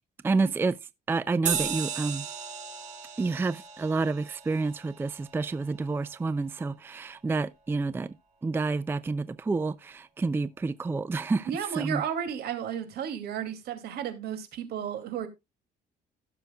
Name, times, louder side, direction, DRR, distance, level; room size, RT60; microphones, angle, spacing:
voice 1, 0.2-0.8 1.1-2.3 3.2-8.1 8.4-12.0, right 3 dB, 15° right, 0.4 m, -29 dB
sound 1, 1.5-6.4, right 7 dB, 45° right, 2.4 m, -36 dB
voice 2, 11.5-15.3, right 8 dB, 70° right, 2.5 m, -33 dB
16.0 x 6.8 x 2.3 m
cardioid pair, 110°, 17 cm